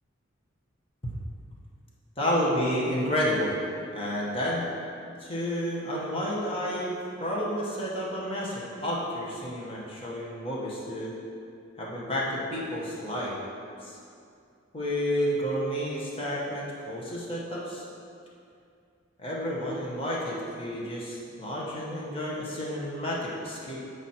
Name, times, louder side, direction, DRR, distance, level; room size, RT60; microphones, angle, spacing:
voice 1, 2.2-3.5 3.9-4.7 5.2-6.9 7.2-11.1 11.8-13.4 13.8-14.0 14.7-17.8 19.2-23.8, equal, 30° left, -5 dB, 1.2 m, -30 dB
8.0 x 4.9 x 4.3 m, 2.5 s
head